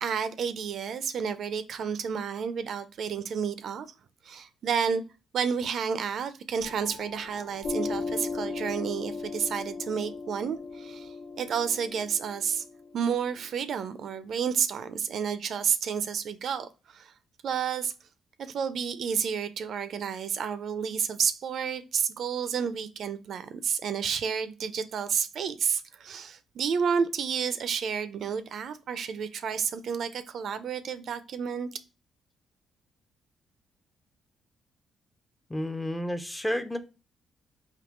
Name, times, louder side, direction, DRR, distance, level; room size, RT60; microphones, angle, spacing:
voice 1, 0.0-3.9 4.2-5.0 5.3-12.7 12.9-17.1 17.4-17.9 18.4-31.7, right 7 dB, 65° right, 0.4 m, -30 dB
Piano, 6.6-13.7, left 4 dB, 75° left, 1.2 m, -37 dB
voice 2, 35.5-36.8, left 1 dB, 10° left, 0.5 m, -31 dB
3.5 x 2.7 x 3.6 m
cardioid pair, 90°, 0 cm